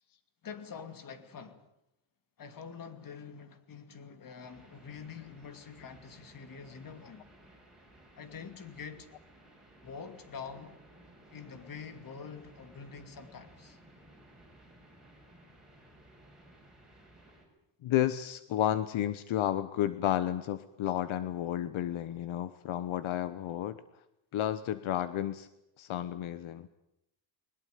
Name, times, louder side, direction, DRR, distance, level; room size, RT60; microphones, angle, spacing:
voice 1, 0.4-1.7 2.4-7.2 8.1-9.1 9.8-10.8 11.3-13.8, left 6 dB, 40° left, 2.6 m, -46 dB
sound 1, 4.4-17.5, right 1 dB, ahead, 6.4 m, -58 dB
voice 2, 17.8-23.8 24.3-25.5 25.8-26.7, left 12 dB, 70° left, 1.1 m, -32 dB
22.0 x 20.5 x 9.4 m
cardioid pair, 160°, 49 cm